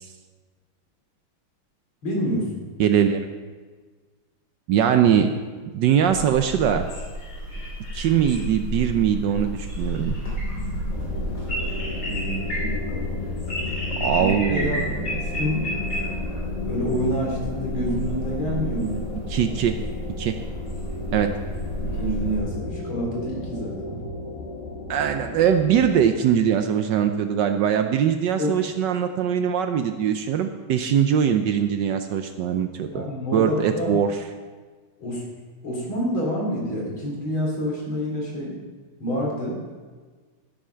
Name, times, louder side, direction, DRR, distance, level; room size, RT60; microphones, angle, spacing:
voice 1, 2.0-2.7 12.1-13.1 14.2-14.9 15.2-15.6 16.5-19.0 21.0-21.3 21.8-24.0 28.4-28.6 32.9-34.0 35.0-35.2 35.6-38.6 39.0-39.6, equal, 75° left, -2 dB, 3.7 m, -28 dB
voice 2, 2.8-3.3 4.7-5.3 5.7-6.9 7.9-10.2 14.0-14.8 19.3-19.8 20.2-20.3 21.1-21.3 24.9-33.0 33.3-34.2, right 8 dB, 70° right, 7 dB, 1.1 m, -21 dB
sound 1, 6.1-22.4, equal, 50° left, 3.6 m, -31 dB
sound 2, 10.9-26.1, left 3 dB, 25° left, 1.5 m, -33 dB
13.0 x 7.3 x 5.7 m, 1.4 s
omnidirectional pair, 2.3 m